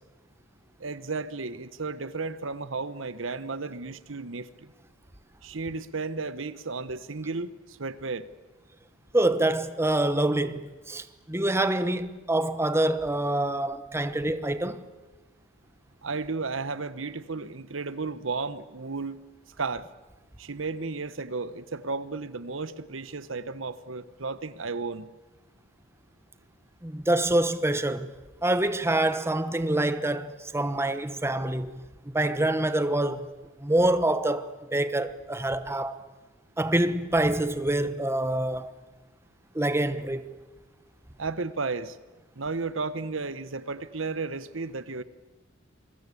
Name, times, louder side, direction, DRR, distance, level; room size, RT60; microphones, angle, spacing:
voice 1, 0.8-4.7 5.4-8.3 16.0-19.2 19.6-19.9 20.4-25.1 41.2-42.0 42.4-45.0, right 4 dB, 70° right, 1.1 m, -33 dB
voice 2, 9.1-14.8 26.8-28.1 28.4-31.7 32.1-33.3 33.6-36.0 36.6-38.7 39.5-40.2, right 1 dB, 15° right, 1.1 m, -26 dB
27.5 x 22.5 x 8.4 m
head